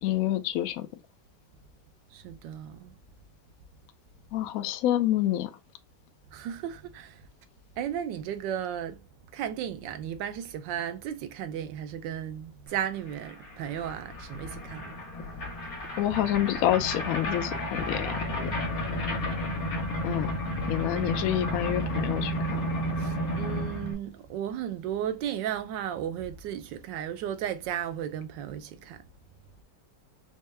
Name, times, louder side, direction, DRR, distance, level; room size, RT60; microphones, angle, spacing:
voice 1, 0.0-0.9 4.3-5.5 16.0-18.6 20.0-20.3 20.7-22.7, left 13 dB, 75° left, 0.8 m, -28 dB
voice 2, 2.1-3.0 6.3-7.3 7.8-9.0 9.3-15.0 18.8-19.5 23.0-29.0, right 10 dB, 85° right, 1.3 m, -35 dB
sound 1, 12.8-12.9 13.1-23.9, equal, 55° left, 1.5 m, -32 dB
4.4 x 2.2 x 3.2 m
omnidirectional pair, 1.9 m